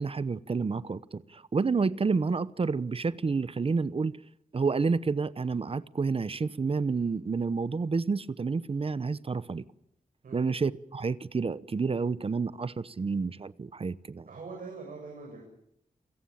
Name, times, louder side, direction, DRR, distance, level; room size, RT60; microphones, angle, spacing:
voice 1, 0.0-4.2 4.5-9.6 10.3-14.3, right 4 dB, 40° right, 0.9 m, -29 dB
voice 2, 14.3-15.4, right 4 dB, 75° right, 7.2 m, -42 dB
28.5 x 17.5 x 8.7 m
wide cardioid pair, 85°, 14 cm